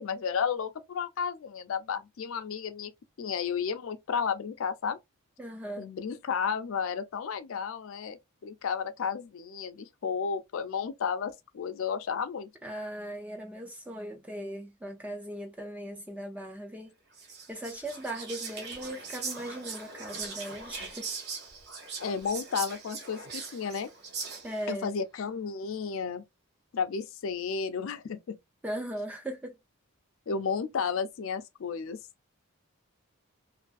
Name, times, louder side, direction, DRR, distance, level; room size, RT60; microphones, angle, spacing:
voice 1, 0.0-2.9 3.2-5.0 5.8-12.5 22.0-23.9 24.7-26.2 26.7-28.4 30.3-32.0, left 6 dB, 65° left, 0.4 m, -32 dB
voice 2, 5.4-5.9 12.6-16.9 17.5-21.1 24.4-25.0 28.6-29.6, right 1 dB, 5° right, 0.3 m, -38 dB
Whispering, 17.1-24.7, right 4 dB, 45° right, 0.7 m, -40 dB
2.6 x 2.5 x 2.3 m
head